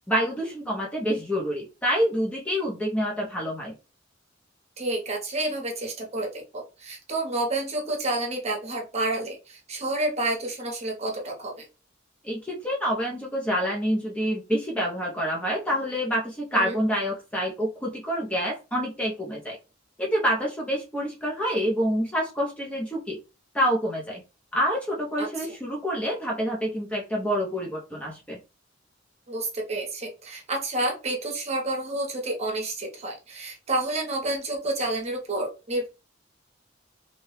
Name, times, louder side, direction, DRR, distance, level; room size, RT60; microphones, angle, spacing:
voice 1, 0.1-3.7 12.2-19.6 20.0-23.2 23.5-24.2 24.5-28.4, equal, 5° left, -3 dB, 0.5 m, -27 dB
voice 2, 4.8-11.7 16.6-16.7 25.2-25.5 29.3-35.9, right 2 dB, 35° right, 1 dB, 0.8 m, -29 dB
2.8 x 2.2 x 3.1 m, 0.30 s
head